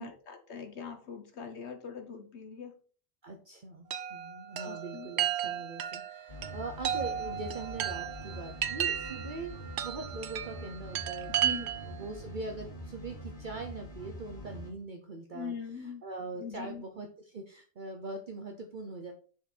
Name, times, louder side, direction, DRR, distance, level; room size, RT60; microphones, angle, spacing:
voice 1, 0.0-2.8 4.6-5.1 11.4-11.7 15.3-16.0 16.3-16.8, left 6 dB, 80° left, 7 dB, 1.4 m, -42 dB
voice 2, 3.2-19.1, right 3 dB, 50° right, 3 dB, 1.0 m, -42 dB
Chime, 3.9-12.0, right 10 dB, 80° right, 0.9 m, -34 dB
sound 1, 6.3-14.7, equal, 45° left, 1.8 m, -45 dB
6.9 x 5.7 x 4.3 m, 0.41 s
omnidirectional pair, 1.1 m